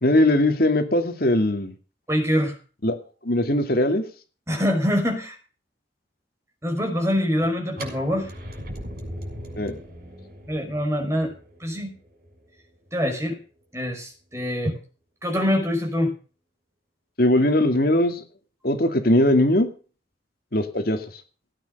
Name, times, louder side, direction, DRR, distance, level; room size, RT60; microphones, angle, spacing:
voice 1, 0.0-1.7 2.8-2.9 3.2-4.0 9.6-9.8 17.2-18.2 18.6-19.7 20.5-21.0, left 1 dB, 55° left, 7 dB, 2.2 m, -20 dB
voice 2, 2.1-2.6 4.5-5.4 6.6-8.3 10.5-11.3 11.6-11.9 12.9-13.4 13.7-14.8 15.2-16.1, equal, 15° right, 3 dB, 5.3 m, -24 dB
sound 1, 7.7-13.6, equal, 55° right, 6.3 m, -39 dB
17.0 x 9.4 x 6.6 m, 0.36 s
head